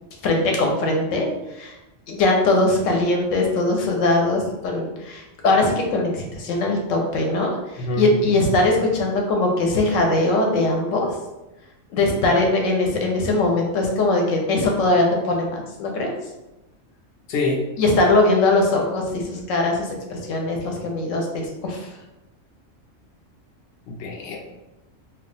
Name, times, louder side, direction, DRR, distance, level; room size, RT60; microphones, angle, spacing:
voice 1, 0.2-1.3 1.6-1.7 2.1-11.1 11.9-16.1 17.8-21.9, left 2 dB, 90° left, 1 dB, 1.0 m, -21 dB
voice 2, 7.8-8.5 17.3-17.7 23.9-24.4, left 1 dB, 60° left, -1 dB, 0.8 m, -26 dB
2.3 x 2.2 x 3.9 m, 0.99 s
omnidirectional pair, 1.3 m